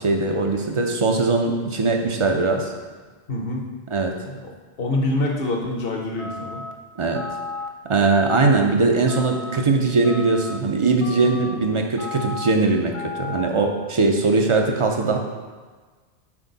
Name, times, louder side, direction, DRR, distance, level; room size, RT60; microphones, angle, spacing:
voice 1, 0.0-2.7 3.9-4.1 7.0-7.2 7.9-12.9 13.2-15.2, right 3 dB, 40° right, 3 dB, 0.5 m, -20 dB
voice 2, 3.3-3.6 4.2-4.5 4.8-6.6, left 2 dB, 60° left, 0 dB, 1.1 m, -25 dB
sound 1, 6.2-6.7 7.1-7.7 8.1-8.7 9.1-9.6 10.0-10.6 11.0-11.5 12.0-12.5 12.9-13.5, left 4 dB, 45° left, 0.5 m, -34 dB
6.0 x 4.5 x 4.0 m, 1.4 s
omnidirectional pair, 1.1 m